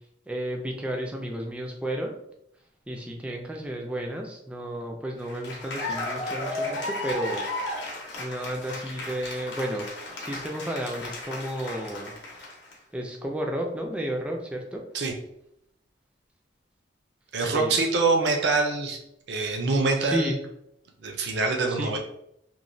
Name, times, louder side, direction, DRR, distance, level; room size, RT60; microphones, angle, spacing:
voice 1, 0.3-2.1 2.9-7.4 8.2-12.1 12.9-14.8 17.4-17.8 20.0-20.3 21.7-22.0, right 1 dB, 5° right, 1 dB, 0.3 m, -32 dB
Cheering / Applause, 5.2-12.7, left 2 dB, 65° left, 0.8 m, -34 dB
voice 2, 17.3-19.0 19.3-20.4 21.0-22.0, right 3 dB, 60° right, 2 dB, 0.5 m, -24 dB
3.0 x 2.1 x 2.6 m, 0.76 s
head